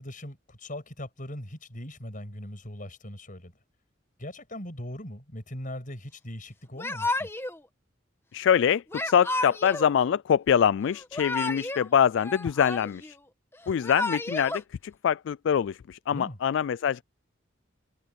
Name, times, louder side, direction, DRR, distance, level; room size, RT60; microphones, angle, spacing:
voice 1, 0.0-3.5 4.2-7.3 16.1-16.4, left 1 dB, 45° left, 6.8 m, -40 dB
Yell / Crying sobbing, 6.8-7.6 8.9-9.9 10.9-11.9 12.2-13.1 13.7-14.6, left 2 dB, 10° left, 1.3 m, -31 dB
voice 2, 8.3-13.2 13.7-17.0, left 8 dB, 65° left, 0.3 m, -24 dB
head